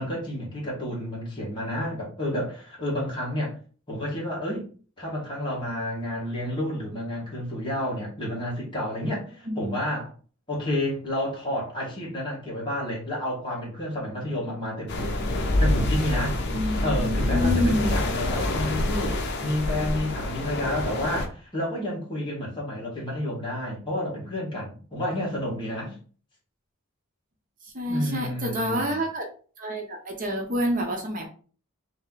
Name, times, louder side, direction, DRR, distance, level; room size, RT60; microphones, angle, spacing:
voice 1, 0.0-3.6 3.9-4.7 5.0-10.1 10.5-15.2 15.6-16.4 16.8-25.9 27.9-28.9, left 1 dB, 25° left, -4 dB, 1.5 m, -30 dB
voice 2, 9.5-9.8 16.5-17.9 25.1-25.2 25.7-25.9 27.7-29.3 29.6-31.3, left 1 dB, 40° right, 2 dB, 0.7 m, -28 dB
sound 1, 14.9-21.3, left 1 dB, 55° left, 0.7 m, -26 dB
3.1 x 2.9 x 3.7 m, 0.41 s
head